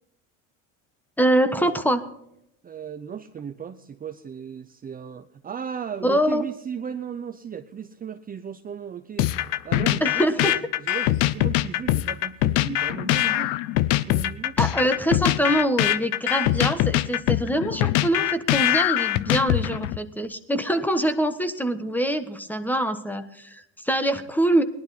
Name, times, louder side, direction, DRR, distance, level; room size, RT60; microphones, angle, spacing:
voice 1, 1.2-2.0 6.0-6.5 10.0-10.6 14.6-24.6, right 1 dB, 5° left, 10 dB, 1.3 m, -24 dB
voice 2, 2.6-9.3 9.6-13.5 13.9-14.6, right 7 dB, 25° right, 8 dB, 0.7 m, -36 dB
sound 1, 9.2-20.0, left 15 dB, 75° left, 0.8 m, -23 dB
19.0 x 11.5 x 4.2 m, 0.78 s
supercardioid pair, 100°, 38 cm